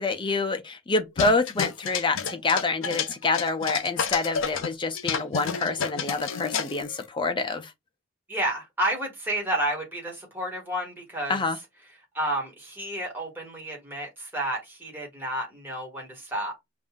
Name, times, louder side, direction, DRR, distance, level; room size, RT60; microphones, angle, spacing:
voice 1, 0.0-7.7 11.3-11.6, left 3 dB, 20° left, 0.6 m, -27 dB
sound 1, 1.2-4.7 5.0-7.0, left 6 dB, 65° left, 0.5 m, -30 dB
voice 2, 8.3-11.4 12.1-16.5, right 1 dB, 10° right, 1.6 m, -30 dB
5.4 x 2.6 x 2.3 m
head